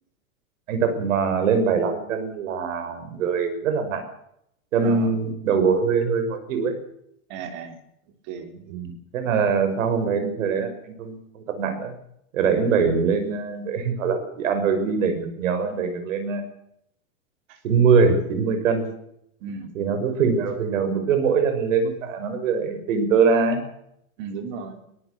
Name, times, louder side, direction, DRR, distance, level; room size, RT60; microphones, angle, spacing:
voice 1, 0.7-4.0 4.7-6.7 8.7-11.9 12.3-16.4 17.6-18.9 19.7-23.6, right 5 dB, 65° right, 9 dB, 6.1 m, -23 dB
voice 2, 4.8-5.1 7.3-7.8 8.3-8.8 12.7-13.0 19.4-19.7 24.2-24.8, right 5 dB, 35° right, 7 dB, 3.4 m, -35 dB
22.5 x 18.0 x 6.9 m, 0.75 s
supercardioid pair, 175°, 42 cm